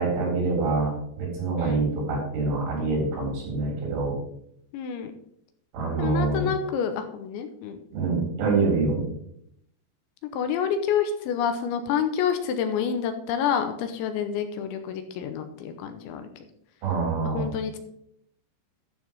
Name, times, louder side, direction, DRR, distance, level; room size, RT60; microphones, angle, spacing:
voice 1, 0.0-4.2 5.7-6.5 7.9-9.1 16.8-17.5, right 3 dB, 85° right, -2 dB, 6.3 m, -25 dB
voice 2, 4.7-5.1 6.0-7.8 10.3-16.4 17.2-17.8, left 7 dB, 80° left, 7 dB, 3.1 m, -28 dB
12.5 x 4.7 x 5.5 m, 0.72 s
omnidirectional pair, 5.5 m